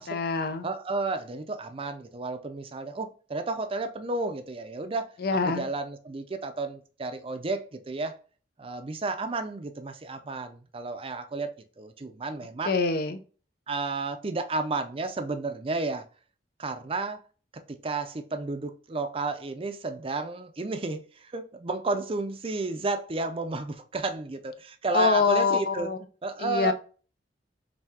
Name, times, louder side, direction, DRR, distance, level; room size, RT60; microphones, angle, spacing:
voice 1, 0.0-0.7 5.2-5.7 12.7-13.2 24.9-26.0 26.4-26.7, left 4 dB, 60° left, 0.5 m, -25 dB
voice 2, 0.6-5.1 5.4-8.2 8.6-11.5 11.8-12.8 13.7-16.1 16.6-17.2 17.5-25.9 26.2-26.7, right 3 dB, 30° right, 0.5 m, -32 dB
5.6 x 2.7 x 2.8 m
head